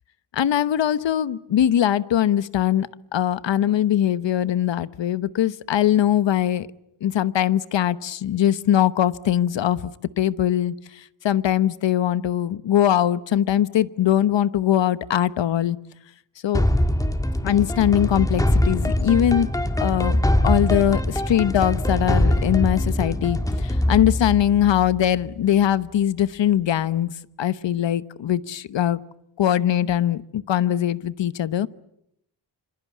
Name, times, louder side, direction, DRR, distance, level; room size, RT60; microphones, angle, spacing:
voice 1, 0.3-6.7 7.0-9.9 10.2-15.8 16.4-16.6 17.4-19.5 19.8-29.0 29.4-31.7, left 11 dB, 75° left, 16 dB, 1.1 m, -21 dB
sound 1, 16.5-25.4, left 1 dB, 10° left, 1.7 m, -23 dB
26.5 x 26.0 x 8.4 m, 0.77 s
wide cardioid pair, 115°, 44 cm